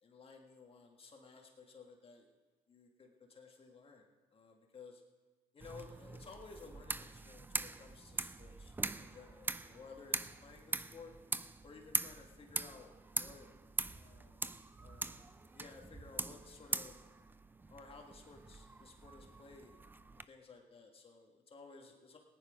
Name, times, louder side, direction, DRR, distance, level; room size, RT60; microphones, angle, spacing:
voice 1, 0.0-2.3 2.7-4.1 4.3-5.0 5.5-11.1 11.6-13.5 13.9-14.4 14.8-15.2 15.5-17.0 17.7-19.7 20.2-22.2, left 4 dB, 35° left, 2 dB, 1.7 m, -56 dB
sound 1, 5.6-20.3, right 3 dB, 10° right, 0.4 m, -42 dB
18.5 x 10.0 x 5.1 m, 1.3 s
cardioid pair, 110°, 17 cm